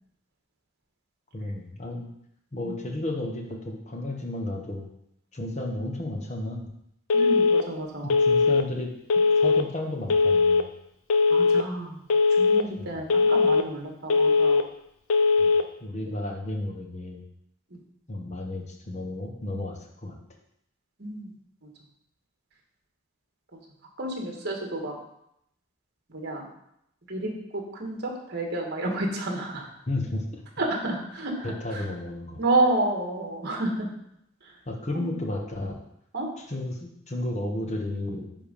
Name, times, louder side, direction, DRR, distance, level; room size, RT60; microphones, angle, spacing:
voice 1, 1.3-2.1 2.5-4.9 5.3-6.7 8.0-8.9 9.4-10.7 12.8-13.0 15.4-15.5 15.8-17.2 18.1-20.2 29.9-30.4 31.4-32.4 34.6-35.8 36.4-38.3, left 1 dB, 35° left, 2 dB, 1.2 m, -33 dB
Telephone, 7.1-7.6 8.1-8.6 9.1-9.6 10.1-10.6 11.1-11.6 12.1-12.6 13.1-13.6 14.1-14.6 15.1-15.6, left 4 dB, 75° left, 0.6 m, -20 dB
voice 2, 7.1-8.2 11.3-12.0 12.4-14.6 17.7-17.8 21.0-21.3 23.5-23.6 24.0-25.0 26.1-26.5 27.1-29.7 30.6-31.9 32.4-33.9 34.9-35.1 36.1-36.3, right 2 dB, 50° right, 0 dB, 1.7 m, -30 dB
9.7 x 3.7 x 5.3 m, 0.77 s
head